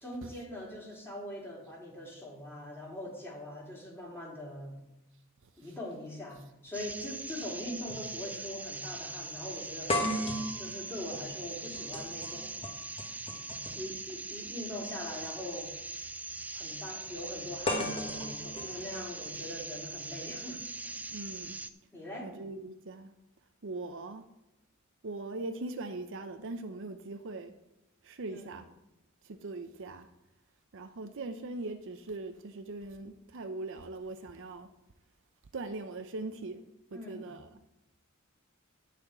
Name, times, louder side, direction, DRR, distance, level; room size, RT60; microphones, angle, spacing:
voice 1, 0.0-4.8 5.6-12.5 13.7-15.7 16.5-20.6 21.0-21.2 21.9-22.4 28.3-28.6 36.9-37.3, left 1 dB, 10° left, -3 dB, 2.7 m, -42 dB
sound 1, 6.7-6.8 7.9-8.1 8.4-8.5 9.9-13.9 15.1-15.3 17.7-19.7, left 1 dB, 25° left, 1.4 m, -36 dB
sound 2, 6.7-21.7, right 3 dB, 5° right, 0.3 m, -42 dB
voice 2, 21.1-21.6 22.2-23.1 23.6-24.3 25.0-27.5 28.0-28.7 29.2-30.1 30.7-34.7 35.5-36.6 36.9-37.5, right 2 dB, 60° right, 8 dB, 0.6 m, -40 dB
12.5 x 4.3 x 7.1 m, 0.92 s
head